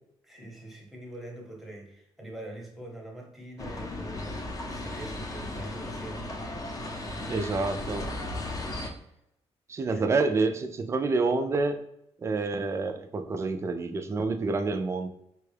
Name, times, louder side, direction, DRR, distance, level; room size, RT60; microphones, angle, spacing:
voice 1, 0.2-6.7 7.0-7.5 8.2-8.5 9.9-10.0, right 1 dB, ahead, -1 dB, 0.8 m, -44 dB
sound 1, 3.6-8.9, left 2 dB, 35° left, 0.6 m, -36 dB
voice 2, 7.3-8.1 9.7-11.8 12.2-15.1, right 3 dB, 25° right, 7 dB, 0.4 m, -28 dB
4.4 x 2.3 x 3.2 m, 0.80 s
cardioid pair, 140°, 11 cm